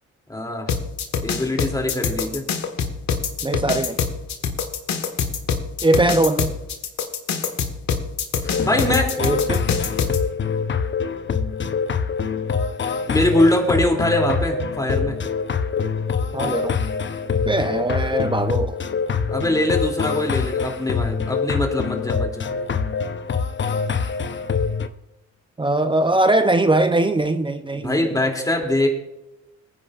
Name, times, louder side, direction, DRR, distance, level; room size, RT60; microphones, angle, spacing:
voice 1, 0.3-0.7 1.2-2.4 8.4-9.2 13.1-15.2 19.3-22.5 27.7-28.9, left 1 dB, 10° left, 2.8 m, -22 dB
sound 1, 0.7-10.2, left 6 dB, 65° left, 1.7 m, -24 dB
voice 2, 3.4-4.0 5.8-6.6 9.2-9.7 16.3-16.8 17.4-18.8 25.6-28.0, right 2 dB, 15° right, 0.6 m, -20 dB
sound 2, 8.4-24.9, left 6 dB, 40° left, 0.8 m, -25 dB
22.0 x 9.8 x 2.5 m
cardioid pair, 90°, 30 cm